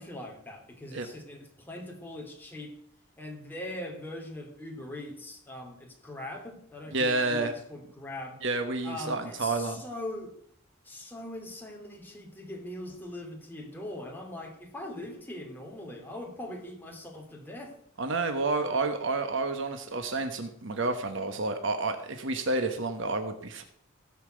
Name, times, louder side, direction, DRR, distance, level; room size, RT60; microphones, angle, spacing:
voice 1, 0.0-2.7 3.2-8.4 8.8-10.3 10.8-17.8, left 1 dB, 10° left, 1 dB, 2.8 m, -41 dB
voice 2, 6.9-7.5 8.4-9.8 18.0-23.6, right 3 dB, 60° right, 7 dB, 1.2 m, -29 dB
17.0 x 5.9 x 7.9 m, 0.67 s
head